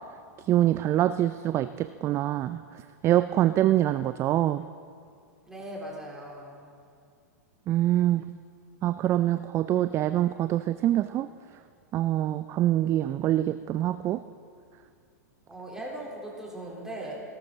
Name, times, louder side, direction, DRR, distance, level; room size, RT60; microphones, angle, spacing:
voice 1, 0.5-2.6 3.0-4.6 7.7-8.2 8.8-11.3 11.9-14.2, right 13 dB, 30° right, 12 dB, 0.4 m, -25 dB
voice 2, 5.5-6.7 15.5-17.1, right 1 dB, 5° right, -4 dB, 3.7 m, -39 dB
18.0 x 12.0 x 4.0 m, 2.3 s
hypercardioid pair, 110°, 9 cm